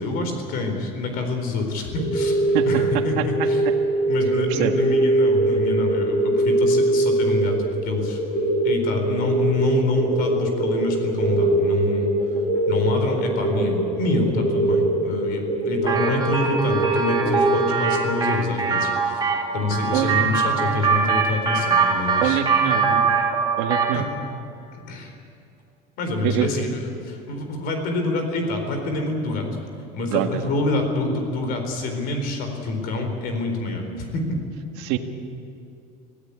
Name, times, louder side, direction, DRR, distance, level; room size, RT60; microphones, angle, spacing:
voice 1, 0.0-2.4 2.6-3.6 4.1-8.2 8.6-12.1 12.7-22.4 22.9-23.0 23.9-24.0 24.9-25.1 26.0-29.5 29.9-34.4, left 2 dB, 55° left, 5 dB, 4.3 m, -26 dB
sound 1, 1.9-18.2, right 2 dB, 15° left, 3.6 m, -22 dB
voice 2, 2.5-2.8 3.2-3.5 4.5-4.7 19.9-20.2 22.2-22.9 23.6-24.1 26.2-26.5 30.1-30.5 34.8-35.0, right 12 dB, 60° right, 5 dB, 1.7 m, -24 dB
sound 2, 15.9-24.0, right 5 dB, 20° right, 2.4 m, -23 dB
25.5 x 17.0 x 8.6 m, 2.6 s
cardioid pair, 155°, 19 cm